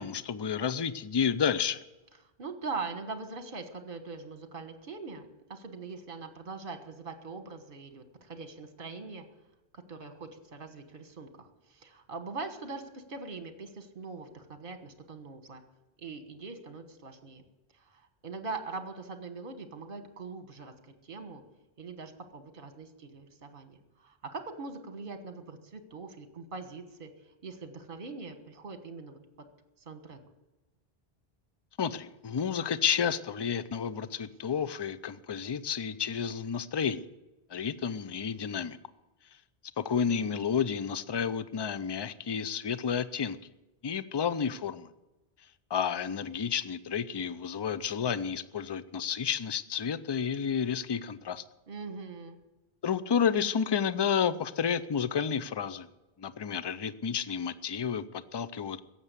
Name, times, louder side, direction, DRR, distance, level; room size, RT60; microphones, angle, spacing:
voice 1, 0.0-1.8 31.8-37.1 37.5-38.8 39.8-43.4 43.8-44.9 45.7-51.4 52.8-55.9 56.2-58.8, left 7 dB, 40° left, 15 dB, 0.4 m, -31 dB
voice 2, 2.4-9.2 9.7-15.6 16.0-17.4 17.7-20.7 21.0-21.4 21.8-27.1 27.4-29.2 29.8-30.2 51.7-52.4, right 4 dB, 55° right, 7 dB, 1.6 m, -42 dB
16.5 x 7.3 x 8.2 m, 1.1 s
omnidirectional pair, 1.1 m